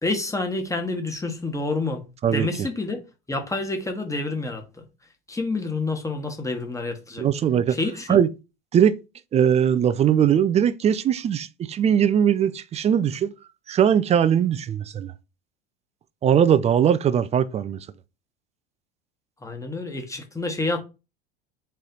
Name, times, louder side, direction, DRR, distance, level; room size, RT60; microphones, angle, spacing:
voice 1, 0.0-2.0 2.3-3.0 3.3-4.6 5.3-7.3 7.7-8.2 19.4-20.8, left 2 dB, 10° left, 1.2 m, -28 dB
voice 2, 7.2-7.8 8.1-8.3 8.7-9.0 9.3-13.3 13.7-15.1 16.2-17.9, right 9 dB, 20° right, 0.3 m, -20 dB
4.3 x 3.1 x 3.9 m
hypercardioid pair, 80°, 32 cm